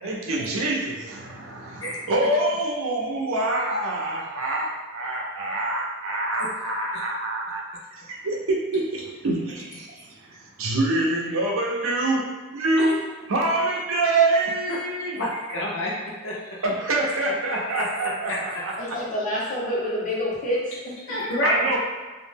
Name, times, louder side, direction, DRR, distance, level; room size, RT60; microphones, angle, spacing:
voice 1, 0.0-7.6 7.9-12.3 12.5-13.0 13.3-15.2 16.6-18.7 21.4-21.8, right 2 dB, 90° right, -1 dB, 0.5 m, -26 dB
voice 2, 14.7-16.6 17.8-18.6 21.1-21.8, equal, 70° left, -4 dB, 0.7 m, -29 dB
voice 3, 18.8-21.3, equal, 35° left, -11 dB, 1.2 m, -28 dB
2.5 x 2.1 x 3.2 m, 1.3 s
head